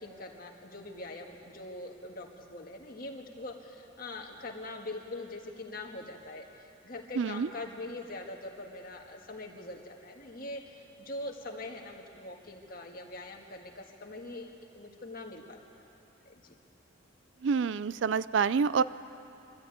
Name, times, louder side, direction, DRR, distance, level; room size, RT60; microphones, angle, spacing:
voice 1, 0.0-15.6 16.2-16.5, left 2 dB, 45° left, 2 dB, 1.8 m, -43 dB
voice 2, 7.2-7.5 17.4-18.8, right 5 dB, 65° right, 17 dB, 0.4 m, -27 dB
23.5 x 13.5 x 9.3 m, 3.0 s
head